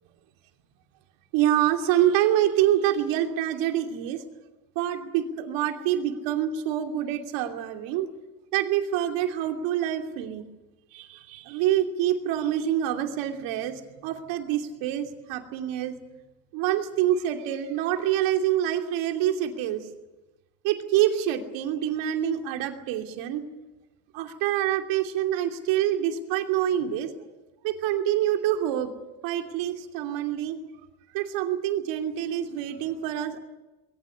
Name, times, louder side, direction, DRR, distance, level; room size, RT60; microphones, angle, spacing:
voice 1, 1.3-4.2 4.7-8.1 8.5-10.5 10.9-16.0 16.5-19.8 20.6-23.4 24.1-27.1 27.6-28.9 29.2-30.6 31.1-33.4, right 11 dB, 80° right, 5 dB, 2.9 m, -26 dB
21.5 x 19.0 x 9.9 m, 1.1 s
supercardioid pair, 100°, 44 cm